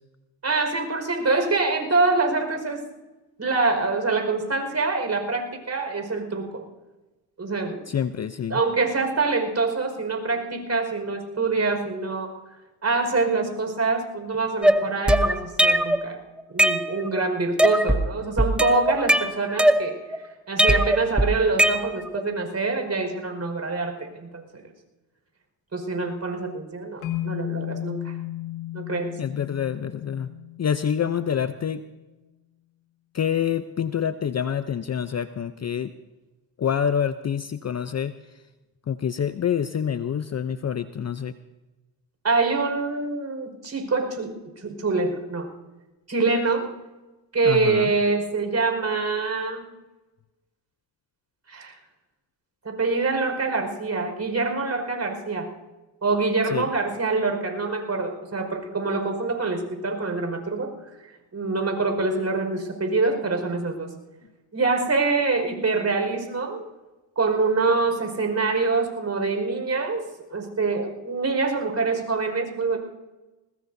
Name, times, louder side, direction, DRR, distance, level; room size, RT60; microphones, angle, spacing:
voice 1, 0.4-2.8 3.4-6.6 7.4-7.9 8.5-12.3 12.8-16.2 16.5-20.0 20.5-24.6 25.7-28.1 28.7-29.2 42.2-44.4 44.6-45.5 46.1-46.7 47.3-49.7 51.5-51.7 52.6-55.5 56.0-60.7 61.3-63.9 64.5-66.6 67.2-70.0 70.3-72.8, right 3 dB, 35° right, 4 dB, 5.2 m, -25 dB
voice 2, 7.9-8.6 29.2-30.3 30.6-31.8 33.1-35.9 36.6-38.1 38.9-41.3 47.4-47.9 56.5-56.7, left 8 dB, 35° left, 12 dB, 0.7 m, -26 dB
sound 1, 14.6-16.0 16.4-17.2 17.6-18.1 18.4-20.2 20.6-22.2, right 1 dB, ahead, 0.9 m, -20 dB
sound 2, 27.0-31.3, left 14 dB, 85° left, 2.2 m, -34 dB
20.5 x 20.5 x 2.7 m, 1.1 s
supercardioid pair, 65°, 48 cm